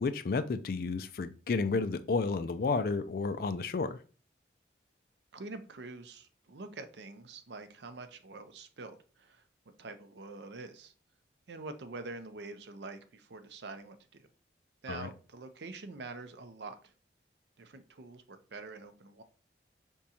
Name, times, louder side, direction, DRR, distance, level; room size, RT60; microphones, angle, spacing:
voice 1, 0.0-4.0 14.9-15.1, left 4 dB, 50° left, 12 dB, 0.3 m, -31 dB
voice 2, 5.3-9.4 9.8-10.9 11.5-14.3 14.8-16.9 17.6-19.2, right 3 dB, 70° right, 9 dB, 0.6 m, -46 dB
5.1 x 3.5 x 2.8 m, 0.38 s
head